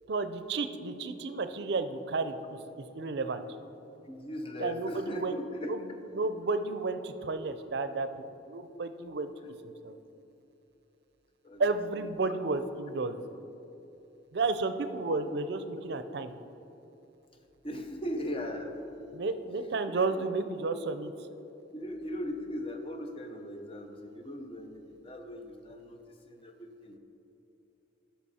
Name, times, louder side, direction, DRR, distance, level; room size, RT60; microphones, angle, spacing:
voice 1, 0.1-3.4 4.6-5.3 5.7-5.8 6.1-8.1 8.5-9.9 11.6-13.2 14.3-16.3 19.1-21.1, right 3 dB, 60° right, 10 dB, 0.5 m, -32 dB
voice 2, 4.1-5.8 11.4-11.8 17.6-18.9 19.9-20.0 21.7-27.0, left 1 dB, 30° left, 5 dB, 0.7 m, -39 dB
13.0 x 5.7 x 4.3 m, 2.9 s
head